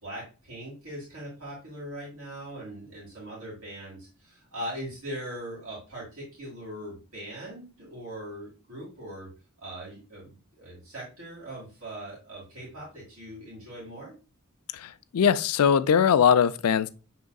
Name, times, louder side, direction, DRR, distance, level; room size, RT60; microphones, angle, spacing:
voice 1, 0.0-9.3 9.6-14.1, right 1 dB, 70° right, 2.1 m, -40 dB
voice 2, 14.7-16.9, left 7 dB, 85° left, 0.4 m, -21 dB
6.1 x 3.7 x 2.3 m
head